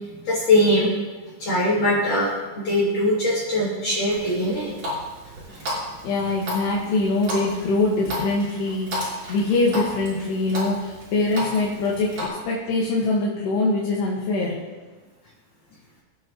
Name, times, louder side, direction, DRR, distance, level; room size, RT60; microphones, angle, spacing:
voice 1, 0.2-0.9 1.4-4.7, left 1 dB, 55° left, -8 dB, 4.2 m, -21 dB
Water tap faucet, 4.1-12.3, equal, 45° right, 6.5 m, -33 dB
voice 2, 6.0-14.6, left 2 dB, 80° left, -4 dB, 3.8 m, -23 dB
27.0 x 9.4 x 3.1 m, 1.3 s
omnidirectional pair, 4.7 m